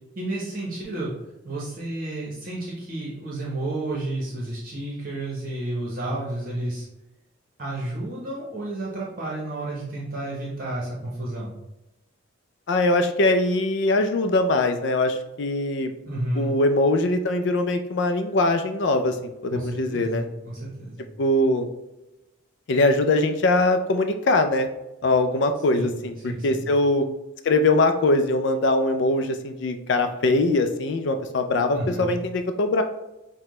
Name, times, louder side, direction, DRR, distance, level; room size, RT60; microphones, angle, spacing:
voice 1, 0.1-1.1 1.4-6.8 7.6-11.5 16.1-16.5 19.5-21.0 25.7-25.9 26.2-26.6 31.7-32.1, right 1 dB, 45° right, -5 dB, 0.9 m, -31 dB
voice 2, 12.7-15.9 16.4-19.2 19.4-20.2 21.2-21.7 22.7-24.7 25.0-27.0 27.4-32.8, left 2 dB, 60° left, 7 dB, 0.4 m, -22 dB
5.8 x 2.2 x 3.1 m, 0.95 s
head